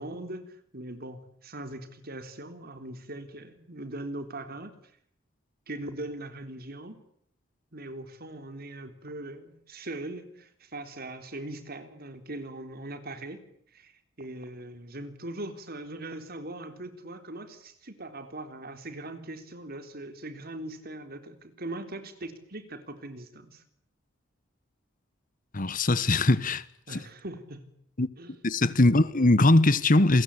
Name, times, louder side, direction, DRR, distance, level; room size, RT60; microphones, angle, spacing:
voice 1, 0.0-4.7 5.7-7.0 7.7-13.4 13.7-23.6 26.9-27.7 28.2-28.4, right 1 dB, 50° right, 3.7 m, -40 dB
voice 2, 25.5-26.6 26.9-27.0 28.0-28.1 28.4-30.2, left 2 dB, 45° left, 1.3 m, -21 dB
28.5 x 22.0 x 8.6 m
head